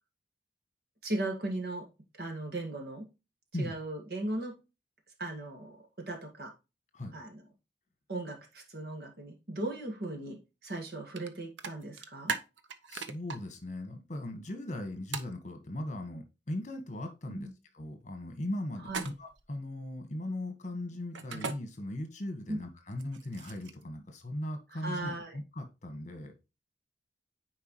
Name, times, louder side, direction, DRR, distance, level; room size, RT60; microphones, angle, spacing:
voice 1, 1.0-1.9 2.2-3.1 3.6-4.5 5.2-5.8 6.1-6.5 7.1-7.4 8.1-12.4 17.3-17.5 18.9-19.1 22.5-22.6 24.8-25.4, right 2 dB, 55° right, 1.8 m, -37 dB
sound 1, 11.2-11.3 11.6-13.4 15.1-15.3 18.8-19.4 21.1-21.6 22.9-23.8, right 5 dB, 85° right, 0.8 m, -37 dB
voice 2, 12.9-17.5 17.7-26.3, left 1 dB, 40° left, 1.4 m, -38 dB
9.5 x 4.6 x 3.1 m
head